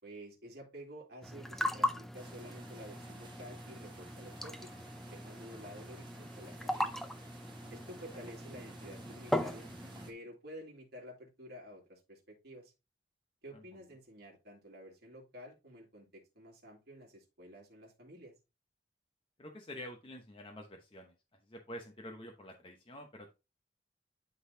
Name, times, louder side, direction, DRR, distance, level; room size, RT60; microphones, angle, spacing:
voice 1, 0.0-4.7 5.1-6.9 7.7-9.7 10.1-12.7 13.4-18.3, equal, 60° right, -1 dB, 2.5 m, -51 dB
sound 1, 1.2-10.1, left 1 dB, ahead, 0.5 m, -39 dB
sound 2, 2.1-10.1, right 2 dB, 25° right, 1.4 m, -55 dB
voice 2, 19.4-21.1 21.4-23.3, left 1 dB, 30° left, 2 dB, 0.9 m, -48 dB
11.5 x 3.9 x 2.8 m, 0.26 s
head